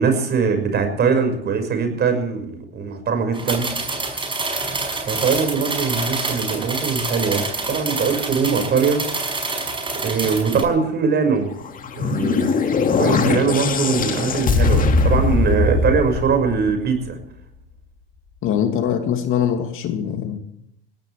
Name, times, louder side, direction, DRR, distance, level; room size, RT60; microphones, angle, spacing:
voice 1, 0.0-3.7 5.1-9.0 10.0-11.5 12.0-12.5 13.0-17.2, right 5 dB, 35° right, 6 dB, 6.0 m, -21 dB
sound 1, 3.3-10.6, right 3 dB, 15° right, 5.8 m, -27 dB
sound 2, 11.6-17.0, left 4 dB, 30° left, 2.3 m, -20 dB
voice 2, 18.4-20.4, left 9 dB, 45° left, 6 dB, 2.7 m, -22 dB
21.5 x 17.0 x 3.5 m, 0.75 s
hypercardioid pair, 90°, 29 cm